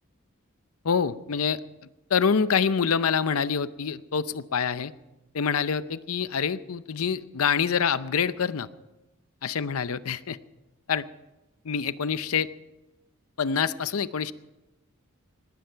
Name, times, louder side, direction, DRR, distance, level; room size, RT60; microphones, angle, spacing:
voice 1, 0.8-1.6 2.1-4.9 5.3-8.7 9.4-10.4 10.9-11.1 11.6-12.5 13.4-14.3, left 6 dB, 80° left, 15 dB, 0.6 m, -26 dB
20.0 x 15.5 x 4.5 m, 1.0 s
head